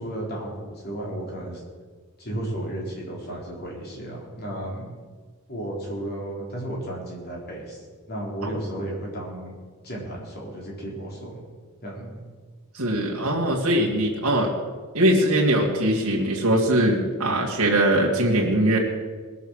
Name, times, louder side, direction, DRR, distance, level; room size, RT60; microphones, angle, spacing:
voice 1, 0.0-1.6 2.2-4.9 5.5-9.5 9.8-11.4 11.8-12.2, right 1 dB, 50° left, -2 dB, 4.1 m, -33 dB
voice 2, 12.7-14.5 14.9-18.8, right 1 dB, 90° right, -2 dB, 2.1 m, -21 dB
20.0 x 7.0 x 6.4 m, 1.5 s
head